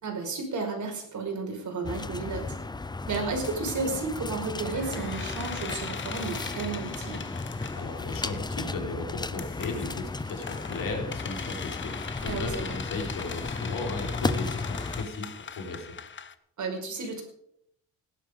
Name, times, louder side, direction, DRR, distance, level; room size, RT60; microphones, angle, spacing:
voice 1, 0.0-2.6 3.1-7.2 12.2-12.8 16.6-17.2, right 4 dB, 50° right, 2 dB, 5.3 m, -33 dB
sound 1, 1.8-15.1, left 3 dB, 10° left, 0.5 m, -35 dB
sound 2, 3.3-3.5 4.7-8.5 9.4-16.3, left 6 dB, 30° left, 0.9 m, -40 dB
voice 2, 7.7-15.9, left 3 dB, 60° left, 2 dB, 4.2 m, -36 dB
16.5 x 11.5 x 5.0 m, 0.71 s
cardioid pair, 140°, 37 cm